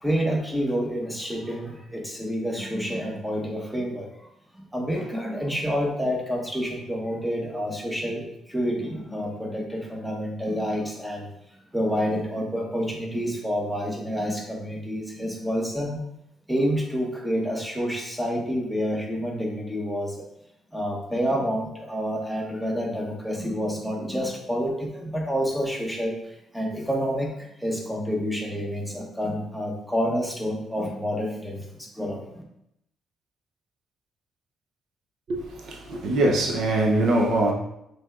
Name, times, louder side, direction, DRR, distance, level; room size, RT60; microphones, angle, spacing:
voice 1, 0.0-4.1 4.5-11.3 11.7-16.0 16.5-20.1 20.7-26.1 26.5-31.6 32.0-32.4, equal, 5° right, -1 dB, 1.1 m, -28 dB
voice 2, 35.3-37.5, right 2 dB, 70° right, 1 dB, 0.7 m, -23 dB
5.9 x 3.4 x 2.5 m, 0.81 s
cardioid pair, 90°, 0 cm